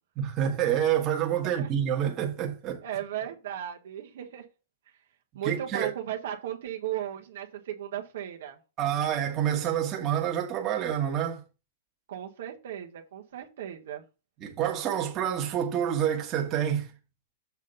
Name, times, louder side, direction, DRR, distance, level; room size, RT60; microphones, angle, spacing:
voice 1, 0.2-2.8 5.4-5.9 8.8-11.4 14.4-16.9, right 9 dB, 25° right, 1.4 m, -28 dB
voice 2, 2.8-4.4 5.3-8.6 12.1-14.0, right 11 dB, 70° right, 1.3 m, -36 dB
7.2 x 3.9 x 5.4 m
supercardioid pair, 155°, 0 cm